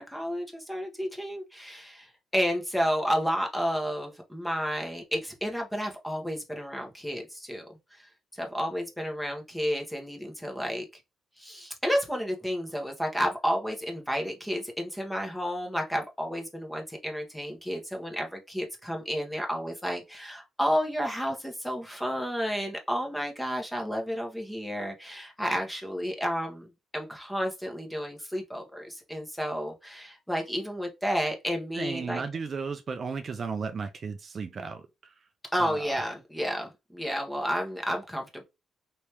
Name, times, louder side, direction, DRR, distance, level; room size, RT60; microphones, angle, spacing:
voice 1, 0.0-7.6 7.9-8.0 8.3-10.8 11.4-32.2 35.5-38.4, equal, 5° left, 1.2 m, -31 dB
voice 2, 31.8-35.1 35.6-36.0, right 5 dB, 45° right, 0.5 m, -35 dB
3.3 x 3.1 x 3.0 m
cardioid pair, 90°, 0 cm